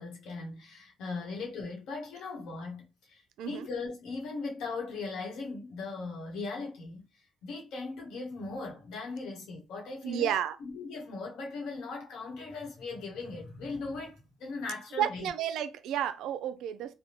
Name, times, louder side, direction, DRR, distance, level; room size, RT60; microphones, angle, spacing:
voice 1, 0.0-10.3 10.6-15.3, left 3 dB, 85° left, 1.2 m, -39 dB
voice 2, 10.0-10.6 15.0-16.9, right 10 dB, 85° right, 0.3 m, -31 dB
3.4 x 2.2 x 2.8 m
cardioid pair, 90°, 0 cm